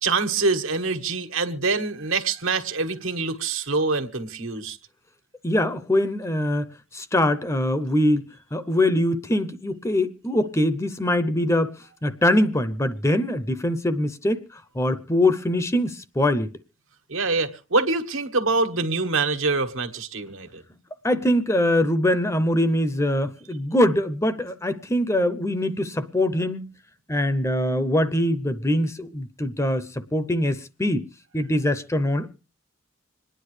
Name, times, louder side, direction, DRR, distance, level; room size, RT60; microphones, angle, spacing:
voice 1, 0.0-4.8 17.1-20.6, right 3 dB, 85° right, 1.6 m, -25 dB
voice 2, 5.4-8.2 8.5-11.7 12.0-16.5 21.0-26.7 27.1-31.1 31.3-32.3, left 1 dB, 15° left, 0.6 m, -23 dB
26.0 x 10.0 x 3.2 m
head